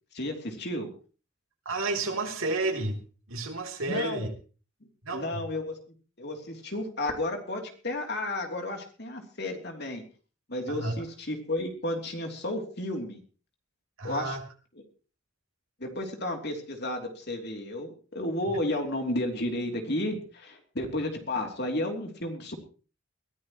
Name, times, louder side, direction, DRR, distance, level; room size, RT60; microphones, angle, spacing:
voice 1, 0.1-0.9 3.9-4.3 5.1-5.8 6.2-10.0 10.5-13.2 14.0-14.4 15.8-22.6, left 1 dB, 50° left, 3 dB, 3.2 m, -32 dB
voice 2, 1.7-3.0 3.3-4.3 5.0-5.5 10.7-10.9 14.0-14.4, right 2 dB, 80° right, 3 dB, 3.4 m, -31 dB
22.0 x 15.0 x 3.1 m, 0.37 s
head